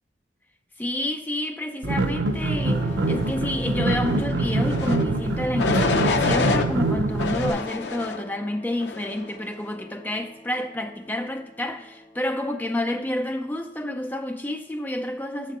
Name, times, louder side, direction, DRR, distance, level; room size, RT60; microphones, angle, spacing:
voice 1, 0.8-15.6, left 1 dB, 10° left, 0.4 m, -29 dB
sound 1, 1.8-7.5, right 2 dB, 85° right, 0.6 m, -24 dB
sound 2, 2.5-13.4, left 2 dB, 50° left, 1.2 m, -44 dB
sound 3, 4.6-5.0 5.6-6.7 7.2-8.2 8.8-9.2, left 4 dB, 85° left, 0.5 m, -26 dB
7.3 x 4.2 x 6.2 m
head